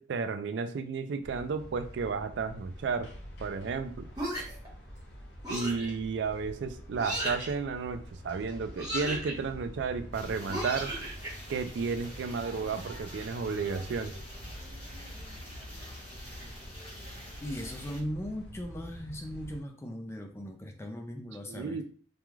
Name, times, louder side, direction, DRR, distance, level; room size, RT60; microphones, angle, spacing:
voice 1, 0.0-3.1 3.4-4.1 5.5-10.9 11.5-14.2 21.5-21.8, right 5 dB, 70° right, 9 dB, 0.3 m, -33 dB
sound 1, 1.2-19.6, equal, 65° left, 0.6 m, -47 dB
sound 2, 4.1-4.7 5.4-5.9 7.0-7.5 8.7-9.3 10.5-11.3, right 1 dB, 20° right, 0.9 m, -34 dB
sound 3, 10.1-18.0, equal, 30° left, 1.0 m, -46 dB
voice 2, 17.4-21.8, equal, 15° left, 4 dB, 0.3 m, -38 dB
2.3 x 2.3 x 3.0 m, 0.44 s
head